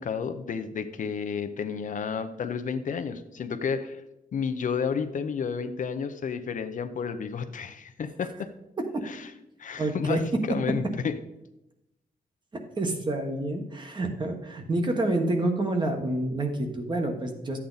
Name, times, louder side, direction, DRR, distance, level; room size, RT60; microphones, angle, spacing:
voice 1, 0.0-4.0 4.3-8.5 9.0-9.3 9.6-11.2, left 6 dB, 55° left, 9 dB, 0.7 m, -31 dB
voice 2, 9.8-10.4 12.5-17.6, right 2 dB, 30° right, 4 dB, 1.3 m, -28 dB
13.0 x 8.6 x 4.0 m, 0.91 s
wide cardioid pair, 170°, 16 cm